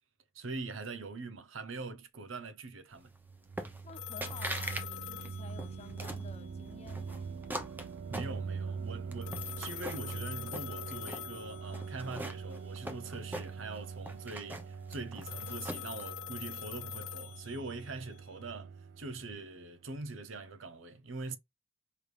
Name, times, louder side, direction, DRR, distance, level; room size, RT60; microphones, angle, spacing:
voice 1, 0.3-3.1 8.1-21.4, right 3 dB, 80° right, 0.8 m, -43 dB
sound 1, 3.1-19.8, right 5 dB, 60° right, 0.4 m, -43 dB
sound 2, 3.6-3.9 4.2-4.9 5.2-6.3 6.9-8.7 9.1-10.2 10.5-11.3 11.7-13.8 14.1-16.0, right 1 dB, 10° right, 0.6 m, -41 dB
voice 2, 3.8-7.3, left 4 dB, 35° left, 0.7 m, -51 dB
sound 3, 3.9-6.3 9.2-12.1 15.2-18.1, left 13 dB, 90° left, 0.4 m, -44 dB
4.9 x 3.2 x 2.5 m
head